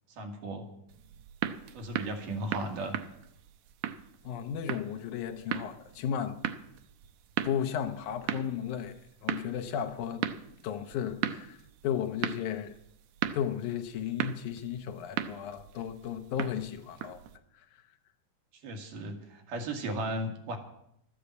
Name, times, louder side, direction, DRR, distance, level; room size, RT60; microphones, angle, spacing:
voice 1, 0.2-0.7 1.7-3.0 18.6-20.6, right 1 dB, 90° right, 3.5 m, -35 dB
sound 1, 0.9-17.4, right 11 dB, 75° right, 1.7 m, -38 dB
voice 2, 4.2-6.4 7.4-10.2 10.6-12.7 13.3-17.2, left 9 dB, 75° left, 2.4 m, -34 dB
12.5 x 10.0 x 8.1 m
omnidirectional pair, 3.6 m